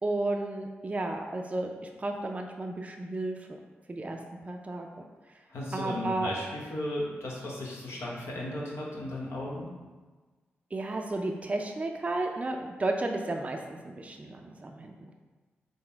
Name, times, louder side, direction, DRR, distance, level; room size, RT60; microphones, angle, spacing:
voice 1, 0.0-3.5 3.9-4.9 5.3-5.4 5.7-6.3 10.7-15.1, right 2 dB, 30° right, 2 dB, 0.4 m, -33 dB
voice 2, 5.5-9.7, left 1 dB, 75° left, -4 dB, 0.9 m, -35 dB
3.8 x 2.0 x 4.4 m, 1.3 s
supercardioid pair, 45°, 5 cm